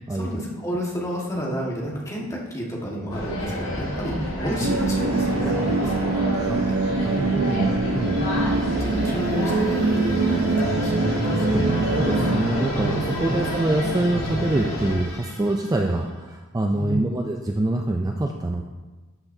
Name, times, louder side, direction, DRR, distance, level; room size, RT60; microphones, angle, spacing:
voice 1, 0.1-7.1 8.1-8.5 8.8-11.8 16.7-17.2, equal, 15° left, -4 dB, 1.5 m, -31 dB
sound 1, 3.1-15.0, equal, 65° left, 2.2 m, -28 dB
voice 2, 4.1-4.7 6.5-6.6 7.0-8.2 11.3-18.6, right 1 dB, 15° right, 2 dB, 0.4 m, -25 dB
sound 2, 4.6-12.4, right 3 dB, 70° right, 0.6 m, -24 dB
sound 3, 7.9-16.4, left 2 dB, 90° left, 2.0 m, -41 dB
13.0 x 5.9 x 2.7 m, 1.3 s
head